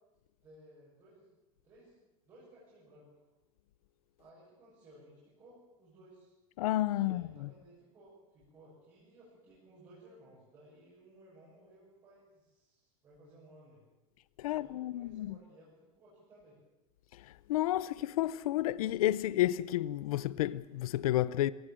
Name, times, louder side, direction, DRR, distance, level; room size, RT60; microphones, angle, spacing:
voice 1, 0.4-1.3 1.6-2.0 2.3-3.2 4.2-6.3 7.0-13.8 14.4-16.6, right 1 dB, 20° right, 7.0 m, -59 dB
voice 2, 6.6-7.5 14.4-15.3 17.5-21.5, left 14 dB, 85° left, 0.7 m, -31 dB
21.5 x 18.0 x 7.6 m
supercardioid pair, 180°, 18 cm